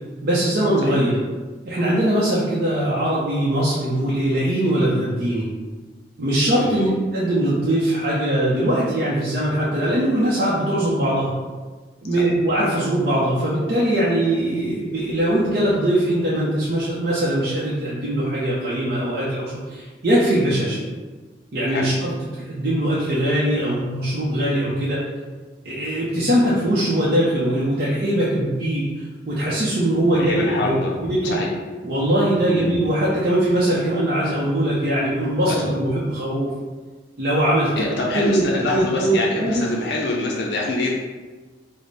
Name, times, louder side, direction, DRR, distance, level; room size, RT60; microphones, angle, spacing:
voice 1, 0.2-1.2 1.6-5.5 6.2-11.3 12.0-20.8 21.5-22.1 22.4-25.0 25.6-30.8 31.0-31.4 31.8-36.5 37.2-38.5 38.7-39.6, right 1 dB, 55° right, -8 dB, 0.6 m, -21 dB
voice 2, 6.6-6.9 20.7-20.8 21.7-21.9 30.1-31.0 31.2-31.5 32.5-32.7 35.4-35.6 37.7-40.9, left 2 dB, 70° left, -2 dB, 0.5 m, -25 dB
3.3 x 2.1 x 4.0 m, 1.3 s
head